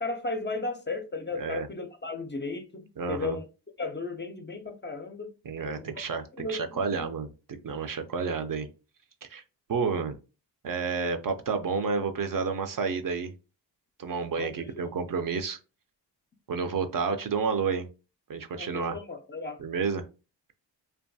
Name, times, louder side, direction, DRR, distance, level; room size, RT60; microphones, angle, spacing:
voice 1, 0.0-2.8 3.1-3.4 3.8-5.3 5.8-5.9 6.4-7.1 14.4-14.9 18.6-19.6, left 3 dB, 25° left, 0.4 m, -35 dB
voice 2, 1.3-1.7 3.0-3.4 5.4-8.7 9.2-9.4 9.7-10.2 10.6-13.3 14.0-15.6 16.5-17.9 18.3-19.0 19.6-20.0, right 5 dB, 50° right, 0.4 m, -30 dB
2.5 x 2.3 x 2.6 m
cardioid pair, 55°, 44 cm